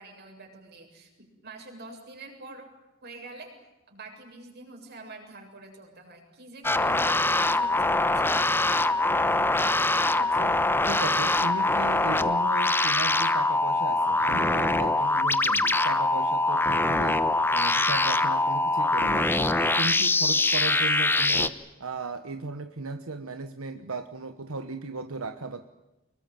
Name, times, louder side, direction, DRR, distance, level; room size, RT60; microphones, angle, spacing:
voice 1, 0.0-2.7 3.0-3.6 3.9-8.4, right 2 dB, 50° right, 2 dB, 7.4 m, -45 dB
sound 1, 6.6-21.5, left 2 dB, 10° left, 1.0 m, -23 dB
voice 2, 10.1-10.6 10.8-17.3 17.5-25.7, right 3 dB, 85° right, 9 dB, 1.2 m, -36 dB
25.0 x 22.0 x 9.2 m, 1.0 s
head